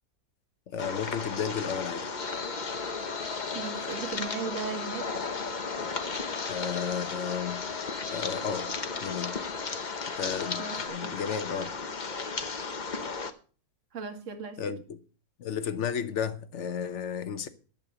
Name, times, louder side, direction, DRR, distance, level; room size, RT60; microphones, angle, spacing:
voice 1, 0.7-2.1 6.5-7.6 8.0-8.7 9.0-9.4 10.1-10.6 10.9-11.7 14.6-15.0 15.4-17.5, left 7 dB, 55° left, 1.2 m, -33 dB
sound 1, 0.8-13.3, left 4 dB, 35° left, 0.9 m, -35 dB
sound 2, 2.2-10.9, left 6 dB, 75° left, 2.9 m, -42 dB
voice 2, 3.5-5.1 10.6-11.2 13.9-14.6, right 5 dB, 50° right, 1.8 m, -37 dB
11.0 x 6.9 x 6.8 m
omnidirectional pair, 1.6 m